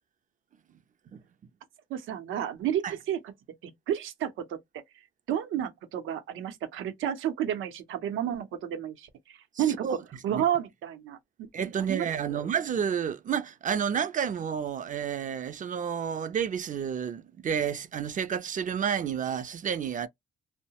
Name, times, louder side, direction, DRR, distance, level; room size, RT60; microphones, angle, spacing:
voice 1, 1.9-3.3 3.6-4.8 5.3-10.0 10.2-11.5 11.8-12.4, right 10 dB, 85° right, 0.7 m, -31 dB
voice 2, 9.6-10.0 10.3-10.4 11.5-20.1, right 8 dB, 40° right, 0.4 m, -30 dB
2.7 x 2.0 x 2.8 m
cardioid pair, 90°, 20 cm